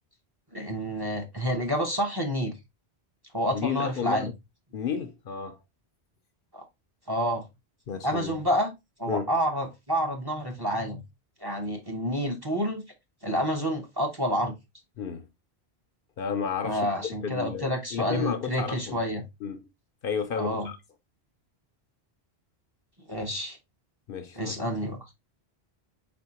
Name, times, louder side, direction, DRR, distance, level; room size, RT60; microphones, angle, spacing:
voice 1, 0.5-2.5 3.3-4.3 6.5-6.6 7.1-7.4 7.9-8.7 9.0-11.0 11.4-12.8 13.2-14.5 16.6-19.2 20.4-20.7 23.1-23.6 24.4-25.0, equal, 25° right, 0.7 m, -28 dB
voice 2, 3.5-4.3 4.7-5.6 7.9-8.4 9.1-9.3 15.0-15.3 16.2-19.0 19.4-19.7 20.0-20.8 24.1-24.5, left 6 dB, 60° left, 0.7 m, -32 dB
4.3 x 4.1 x 2.8 m
omnidirectional pair, 1.1 m